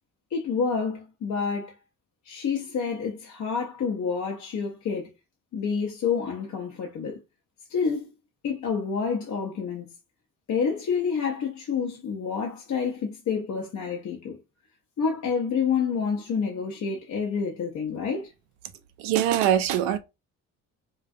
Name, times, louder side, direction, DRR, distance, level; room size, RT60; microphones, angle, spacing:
voice 1, 0.3-1.7 2.2-5.1 5.5-7.2 7.7-8.1 8.4-9.9 10.5-14.4 15.0-18.3, left 6 dB, 45° left, 0.7 m, -28 dB
voice 2, 19.0-20.0, right 10 dB, 70° right, 0.5 m, -22 dB
2.4 x 2.2 x 2.4 m
hypercardioid pair, 50°, 42 cm